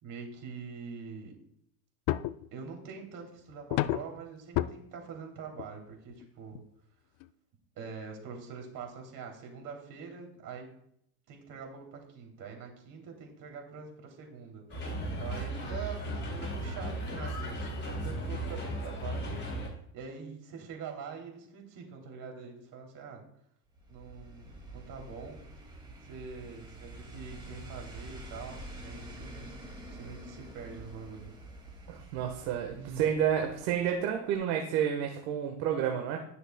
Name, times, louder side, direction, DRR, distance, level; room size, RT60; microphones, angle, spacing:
voice 1, 0.0-1.4 2.5-6.6 7.7-10.7 11.3-23.2 23.9-25.4 26.0-29.6 30.0-31.3 32.7-33.1, right 5 dB, 45° right, 2 dB, 3.1 m, -44 dB
sound 1, 2.1-2.5 3.7-4.2 4.6-4.7 5.6-5.7 6.1-6.2 6.5-6.6 7.2-7.3, left 15 dB, 45° left, 0.5 m, -29 dB
sound 2, 14.7-19.7, right 1 dB, 25° left, 3.9 m, -36 dB
sound 3, 23.7-34.1 34.3-34.4, right 1 dB, 10° right, 2.3 m, -47 dB
voice 2, 31.9-36.2, right 9 dB, 60° right, 3 dB, 1.4 m, -30 dB
18.5 x 6.6 x 2.3 m, 0.72 s
supercardioid pair, 115°, 46 cm